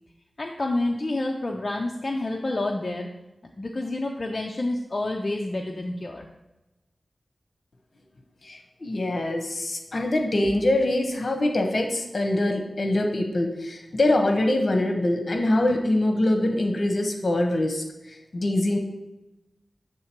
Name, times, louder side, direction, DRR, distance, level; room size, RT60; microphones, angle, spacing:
voice 1, 0.4-3.1 3.6-6.3, left 2 dB, 40° left, 1 dB, 0.5 m, -28 dB
voice 2, 8.4-18.8, left 1 dB, 60° left, 3 dB, 1.0 m, -24 dB
7.6 x 3.7 x 4.4 m, 0.99 s
wide cardioid pair, 80°, 0 cm